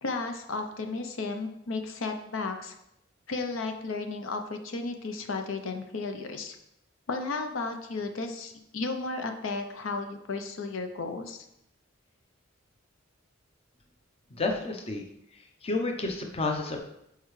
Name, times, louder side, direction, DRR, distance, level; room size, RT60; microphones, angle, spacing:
voice 1, 0.0-2.7 3.3-6.6 7.1-11.4, left 3 dB, 80° left, 6 dB, 0.6 m, -34 dB
voice 2, 14.3-15.0 15.3-16.8, left 3 dB, 30° left, 3 dB, 0.7 m, -31 dB
6.5 x 4.6 x 3.2 m, 0.79 s
head